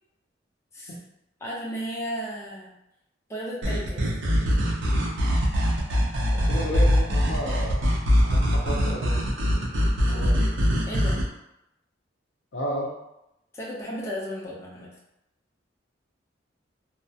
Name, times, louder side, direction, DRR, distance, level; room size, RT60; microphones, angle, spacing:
voice 1, 1.4-2.7 3.3-4.1 10.9-11.2 13.5-14.9, equal, 15° left, -5 dB, 0.4 m, -34 dB
sound 1, 3.6-11.2, equal, 80° right, 0.5 m, -23 dB
voice 2, 6.3-7.8 8.2-9.2 10.1-10.5 12.5-12.9, equal, 65° left, -1 dB, 0.5 m, -32 dB
2.3 x 2.0 x 2.6 m, 0.85 s
head